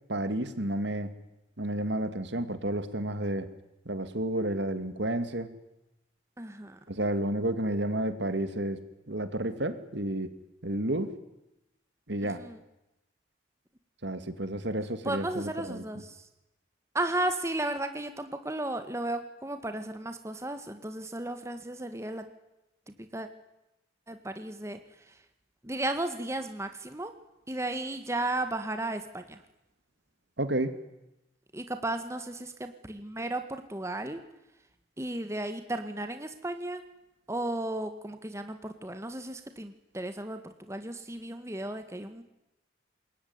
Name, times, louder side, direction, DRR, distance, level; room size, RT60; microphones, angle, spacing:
voice 1, 0.1-1.2 1.6-3.5 3.9-5.5 6.9-8.8 9.1-10.3 10.6-11.2 12.1-12.4 14.0-15.8 30.4-30.8, right 1 dB, 65° right, 11 dB, 2.4 m, -31 dB
voice 2, 6.4-6.8 12.3-12.6 15.0-16.3 16.9-22.3 22.9-23.3 24.1-25.2 25.6-27.1 27.5-29.4 31.5-34.2 35.0-36.8 37.3-42.2, right 1 dB, 15° right, 8 dB, 1.7 m, -34 dB
27.5 x 22.0 x 9.7 m, 0.92 s
head